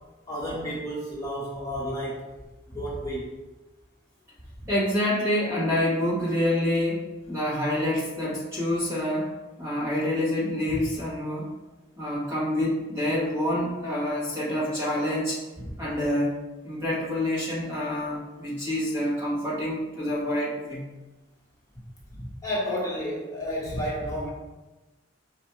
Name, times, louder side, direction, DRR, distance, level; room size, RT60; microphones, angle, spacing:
voice 1, 0.3-2.2 2.7-3.3 10.7-10.8 22.1-24.3, equal, 15° left, -7 dB, 1.3 m, -31 dB
voice 2, 4.7-11.5 12.0-15.4 15.8-16.3 16.6-20.8, left 1 dB, 15° right, -8 dB, 1.1 m, -27 dB
4.9 x 2.5 x 4.3 m, 1.1 s
head